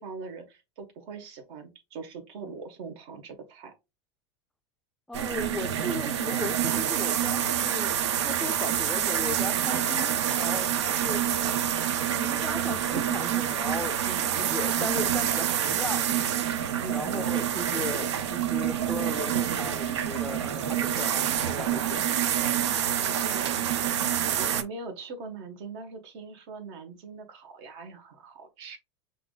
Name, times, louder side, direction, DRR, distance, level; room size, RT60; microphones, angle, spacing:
voice 1, 0.0-3.7 14.1-14.5 16.8-17.0 22.8-23.8 24.2-28.8, right 4 dB, 65° right, 1.4 m, -41 dB
voice 2, 5.1-11.2 12.1-14.0 14.4-16.4 16.9-22.1, left 2 dB, 5° left, 0.4 m, -37 dB
sound 1, 5.1-24.6, right 10 dB, 85° right, 0.6 m, -27 dB
5.8 x 2.7 x 2.4 m
hypercardioid pair, 110°, 14 cm